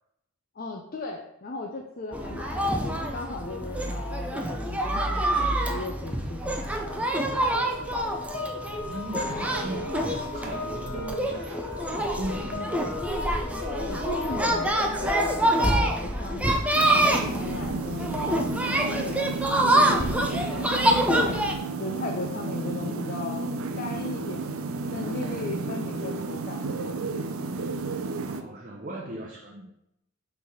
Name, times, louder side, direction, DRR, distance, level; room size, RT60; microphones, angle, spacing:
voice 1, 0.6-7.5 13.8-16.6 17.0-21.1 21.8-23.5 23.7-24.6 24.9-26.7, left 2 dB, 40° left, 1 dB, 0.6 m, -37 dB
sound 1, 2.1-21.5, right 1 dB, 5° right, 0.5 m, -26 dB
sound 2, 7.3-15.4, left 3 dB, 25° left, 1.7 m, -36 dB
voice 2, 8.6-13.0 28.3-29.7, right 1 dB, 40° right, -1 dB, 0.7 m, -38 dB
sound 3, 16.7-28.4, right 3 dB, 75° right, 0.5 m, -32 dB
5.9 x 3.4 x 5.4 m, 0.82 s
head